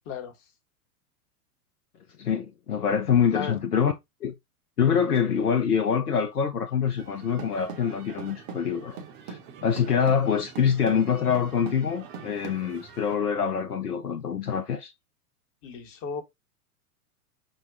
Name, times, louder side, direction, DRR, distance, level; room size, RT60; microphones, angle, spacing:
voice 1, 2.2-3.9 4.2-4.3 4.8-14.9, left 7 dB, 85° left, 0.7 m, -25 dB
sound 1, 7.0-13.2, right 6 dB, 30° right, 0.7 m, -43 dB
voice 2, 15.6-16.2, left 6 dB, 30° left, 1.0 m, -34 dB
5.1 x 2.2 x 3.6 m
figure-of-eight pair, 95°, 45 cm